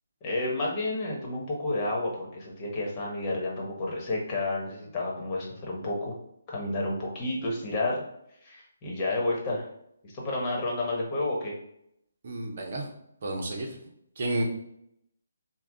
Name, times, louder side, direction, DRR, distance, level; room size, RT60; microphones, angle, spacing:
voice 1, 0.2-6.1 6.5-8.0 8.4-9.7 10.0-11.5, left 2 dB, 25° left, -2 dB, 1.3 m, -30 dB
voice 2, 12.2-12.9 13.2-13.7 14.2-14.4, right 1 dB, 50° right, 1 dB, 1.0 m, -31 dB
5.9 x 2.4 x 3.7 m, 0.76 s
figure-of-eight pair, 145°, 0 cm